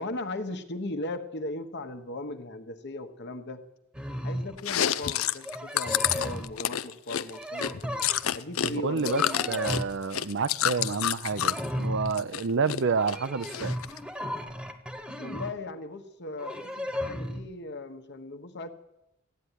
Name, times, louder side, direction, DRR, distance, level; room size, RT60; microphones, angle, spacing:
voice 1, 0.0-3.6 4.2-8.0 8.3-9.7 15.2-18.7, left 2 dB, 55° left, 1.3 m, -38 dB
sound 1, 3.9-4.6 5.4-6.6 7.3-8.6 9.0-10.0 10.6-11.0 11.2-12.2 13.0-15.5 16.4-17.5, equal, 5° right, 1.2 m, -35 dB
Chewing mastication, 4.6-8.7 9.0-11.7 12.1-12.8 13.1-14.0, left 10 dB, 80° left, 0.6 m, -28 dB
voice 2, 8.6-9.2 9.5-13.8, right 5 dB, 60° right, 0.6 m, -29 dB
15.0 x 9.3 x 10.0 m
head